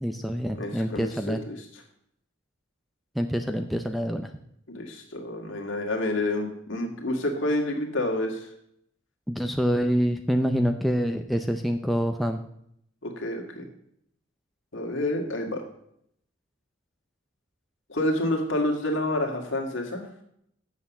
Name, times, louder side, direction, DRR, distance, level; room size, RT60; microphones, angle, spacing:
voice 1, 0.0-1.4 3.2-4.3 9.3-12.4, equal, ahead, 4 dB, 0.4 m, -26 dB
voice 2, 0.6-1.6 4.7-8.5 13.0-13.7 14.7-15.6 17.9-20.1, left 1 dB, 60° left, 2 dB, 1.9 m, -28 dB
8.2 x 6.7 x 7.0 m, 0.72 s
head